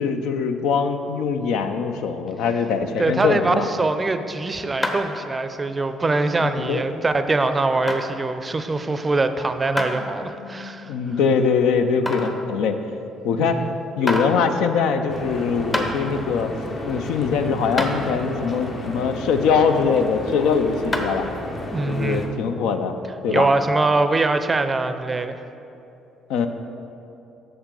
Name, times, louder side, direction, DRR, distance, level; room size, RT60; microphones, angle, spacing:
voice 1, 0.0-3.7 6.6-6.8 9.9-10.0 10.3-12.8 13.2-13.7 14.0-16.5 16.9-21.3 21.9-23.0 23.2-23.5 26.3-26.5, left 5 dB, 70° left, 8 dB, 0.4 m, -22 dB
voice 2, 3.0-10.9 13.4-13.8 21.7-22.3 23.3-25.4, right 3 dB, 30° right, 9 dB, 0.5 m, -23 dB
sound 1, 4.8-5.2 5.7-5.8 6.6-6.7 7.9-8.0 9.8-9.9 10.5-10.6 12.1-12.4 13.5-13.6 14.1-14.3 15.3-15.4 15.7-15.9 17.2-17.3 17.8-18.0 20.9-21.2, left 1 dB, 25° left, 0.9 m, -25 dB
Stream / Boat Water vehicle, 15.1-22.3, left 1 dB, 45° left, 1.1 m, -33 dB
6.9 x 6.4 x 3.8 m, 2.8 s
hypercardioid pair, 50°, 0 cm